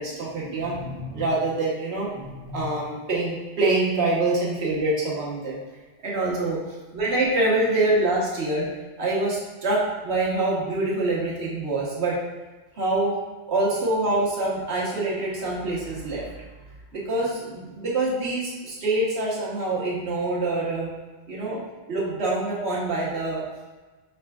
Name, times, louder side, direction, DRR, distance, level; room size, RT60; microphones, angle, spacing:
voice 1, 0.0-5.6 6.0-8.7 9.0-12.2 12.7-13.2 13.5-16.3 16.9-20.9 21.3-21.6 21.9-23.4, right 2 dB, 65° right, -5 dB, 1.3 m, -25 dB
5.6 x 3.4 x 2.3 m, 1.2 s
omnidirectional pair, 1.2 m